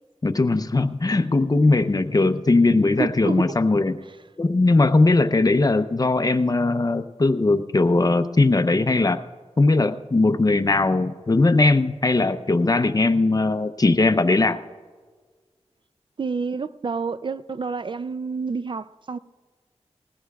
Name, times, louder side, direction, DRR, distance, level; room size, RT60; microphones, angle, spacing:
voice 1, 0.2-4.0 4.4-9.2 9.6-14.6, left 2 dB, 35° left, 0.6 m, -19 dB
voice 2, 3.0-3.5 16.2-19.2, right 5 dB, 45° right, 0.3 m, -28 dB
20.0 x 16.0 x 2.3 m
wide cardioid pair, 90°, 11 cm